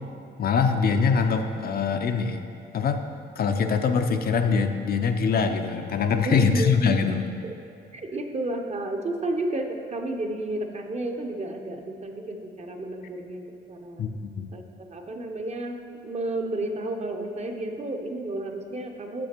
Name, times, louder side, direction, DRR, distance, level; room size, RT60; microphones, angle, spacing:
voice 1, 0.4-2.4 2.7-3.0 3.4-7.3 14.0-14.5, left 5 dB, 50° left, 6 dB, 0.5 m, -23 dB
voice 2, 6.2-6.9 7.9-14.1 14.5-14.6 14.9-15.8 16.0-19.3, right 2 dB, 35° right, 4 dB, 0.7 m, -31 dB
6.4 x 6.1 x 4.4 m, 2.6 s
cardioid pair, 90°, 20 cm